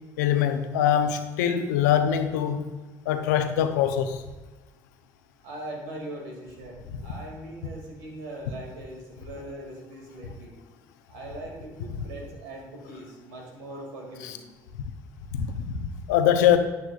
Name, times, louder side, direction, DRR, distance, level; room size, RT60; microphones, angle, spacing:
voice 1, 0.2-2.7 3.1-4.2 15.3-16.6, left 9 dB, 90° left, 0.6 m, -23 dB
voice 2, 5.4-10.6 11.1-14.4, right 1 dB, 85° right, 2.3 m, -40 dB
9.6 x 9.3 x 2.4 m
hypercardioid pair, 65°, 9 cm